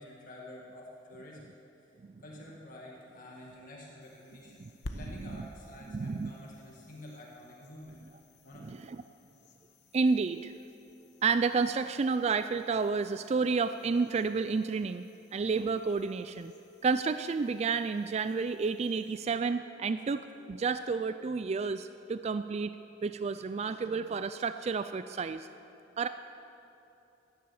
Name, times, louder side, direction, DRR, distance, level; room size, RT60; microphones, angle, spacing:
voice 1, 0.0-1.5 1.8-1.9 2.2-8.0 8.4-8.7, left 1 dB, 45° left, -3 dB, 1.9 m, -49 dB
sound 1, 4.0-19.2, left 1 dB, 65° left, 1.1 m, -53 dB
voice 2, 5.9-6.3 8.6-9.0 9.9-10.5 11.2-16.5 16.8-22.7 23.0-25.5 26.0-26.1, right 4 dB, 35° right, 11 dB, 0.3 m, -30 dB
16.0 x 11.5 x 7.1 m, 2.9 s
head